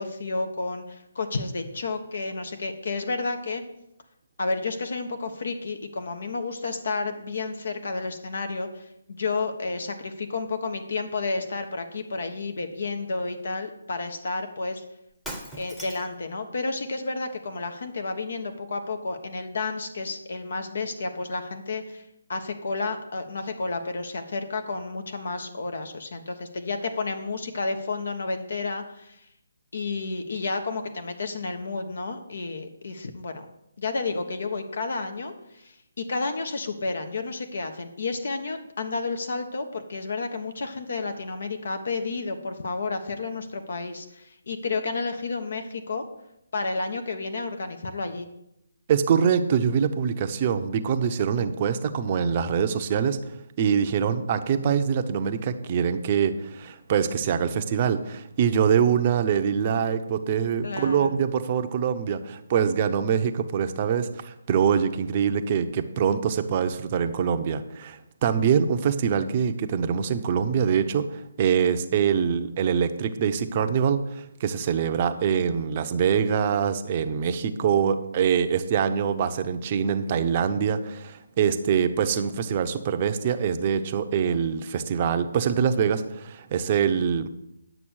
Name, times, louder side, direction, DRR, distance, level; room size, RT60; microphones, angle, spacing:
voice 1, 0.0-3.6 4.4-14.8 15.5-29.3 29.7-33.4 33.8-46.0 46.5-48.3 60.6-61.2, left 3 dB, 60° left, 7 dB, 1.2 m, -31 dB
Shatter, 15.1-16.2, equal, 5° left, 1.0 m, -38 dB
voice 2, 48.9-53.2 53.6-87.3, right 7 dB, 30° right, 8 dB, 0.8 m, -24 dB
10.0 x 6.7 x 6.4 m, 0.83 s
hypercardioid pair, 160°, 0 cm